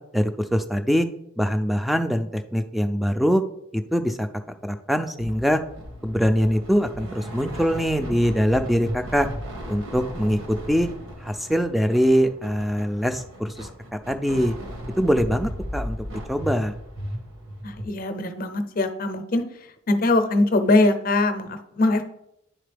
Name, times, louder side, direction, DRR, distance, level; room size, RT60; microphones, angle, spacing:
voice 1, 0.1-1.1 1.4-3.4 3.7-4.3 4.6-5.6 6.0-9.3 9.7-10.9 11.2-13.7 14.1-14.5 15.0-16.7, equal, ahead, 8 dB, 0.3 m, -23 dB
sound 1, 5.2-17.8, equal, 80° right, 1.6 m, -36 dB
voice 2, 17.6-19.4 19.9-22.0, left 2 dB, 45° left, 8 dB, 0.6 m, -22 dB
10.0 x 4.0 x 3.4 m, 0.79 s
head